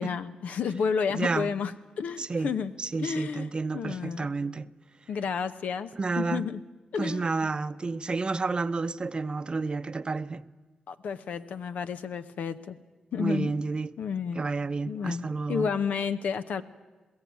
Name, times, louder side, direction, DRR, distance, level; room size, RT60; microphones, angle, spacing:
voice 1, 0.0-2.7 3.0-4.3 5.1-5.9 6.2-6.6 6.9-7.2 10.9-12.8 13.1-13.5 14.0-14.4 14.9-16.6, left 6 dB, 80° left, 0.9 m, -31 dB
voice 2, 1.1-1.5 2.2-2.5 2.8-4.7 5.9-6.4 7.0-10.4 13.2-13.9 14.3-15.7, right 3 dB, 40° right, 0.7 m, -30 dB
21.0 x 16.0 x 9.5 m
cardioid pair, 65°, 3 cm